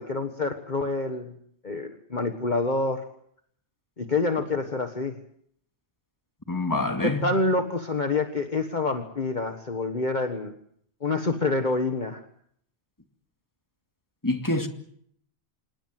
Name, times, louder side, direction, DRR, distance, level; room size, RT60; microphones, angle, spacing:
voice 1, 0.0-1.3 1.6-3.0 4.0-5.2 7.0-10.5 11.0-12.2, left 3 dB, 40° left, 1.6 m, -27 dB
voice 2, 6.5-7.2 14.2-14.7, left 2 dB, 15° left, 2.3 m, -26 dB
27.0 x 20.0 x 7.6 m
omnidirectional pair, 1.2 m